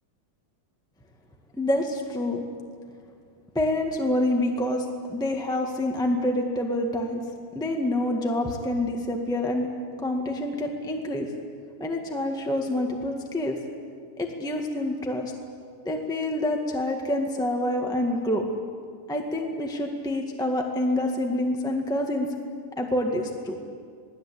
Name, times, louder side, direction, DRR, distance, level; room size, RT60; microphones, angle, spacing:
voice 1, 1.6-2.4 3.5-7.2 7.5-9.7 10.0-11.3 11.8-13.6 14.2-15.3 15.8-18.4 19.1-22.3 22.8-23.6, left 1 dB, ahead, 1 dB, 0.9 m, -27 dB
27.5 x 20.0 x 8.7 m, 2.2 s
omnidirectional pair, 3.7 m